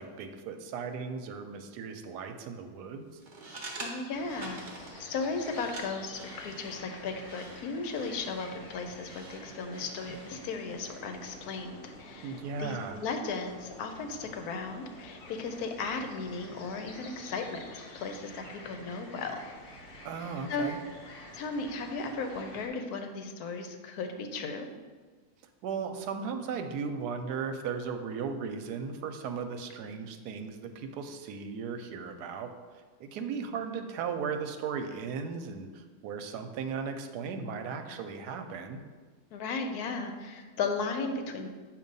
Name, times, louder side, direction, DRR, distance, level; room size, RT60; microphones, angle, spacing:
voice 1, 0.0-3.1 12.2-13.0 20.0-20.8 25.6-32.5 33.0-38.8, right 5 dB, 85° right, 7 dB, 1.1 m, -36 dB
sound 1, 3.1-10.5, right 2 dB, 40° right, 0.8 m, -47 dB
voice 2, 3.8-17.6 17.9-19.4 20.5-20.7 21.3-24.7 39.3-41.5, left 4 dB, 75° left, 5 dB, 1.1 m, -36 dB
sound 2, 4.1-22.7, left 1 dB, 45° left, 0.8 m, -49 dB
7.4 x 2.7 x 5.3 m, 1.5 s
omnidirectional pair, 1.7 m